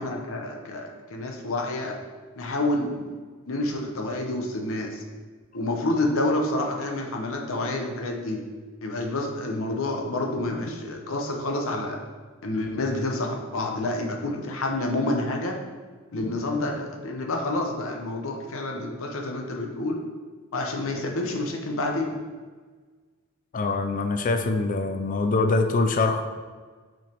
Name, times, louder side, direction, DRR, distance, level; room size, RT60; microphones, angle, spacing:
voice 1, 0.0-2.0 2.4-3.2 3.5-5.0 5.5-8.4 8.8-12.0 12.4-15.6 16.1-20.0 20.5-22.2, left 2 dB, 65° left, 2 dB, 0.8 m, -28 dB
voice 2, 23.5-26.2, left 3 dB, 35° left, 6 dB, 0.4 m, -24 dB
6.2 x 5.1 x 4.4 m, 1.4 s
head